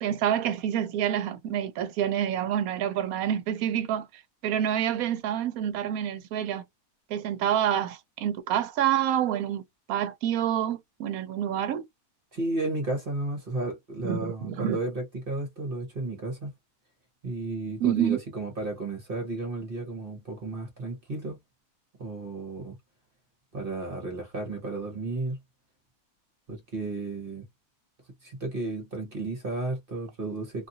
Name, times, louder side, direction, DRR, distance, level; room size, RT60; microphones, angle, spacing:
voice 1, 0.0-4.1 4.4-6.6 7.1-9.6 9.9-11.8 14.0-14.8 17.8-18.2, right 10 dB, 70° right, 1.0 m, -27 dB
voice 2, 12.3-16.5 17.2-21.4 22.0-22.8 23.5-25.4 26.5-27.4 28.2-30.7, right 2 dB, 40° right, 1.0 m, -33 dB
2.7 x 2.5 x 2.6 m
omnidirectional pair, 1.6 m